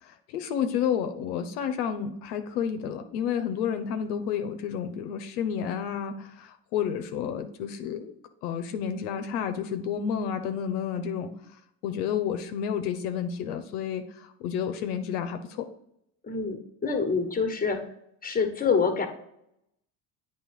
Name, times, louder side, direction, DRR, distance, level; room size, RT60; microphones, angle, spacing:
voice 1, 0.0-8.1 8.4-11.3 11.8-15.7, left 8 dB, 85° left, 7 dB, 0.7 m, -30 dB
voice 2, 16.2-17.9 18.2-19.1, left 5 dB, 20° left, 5 dB, 1.2 m, -26 dB
8.8 x 3.0 x 4.7 m, 0.76 s
hypercardioid pair, 70°, 44 cm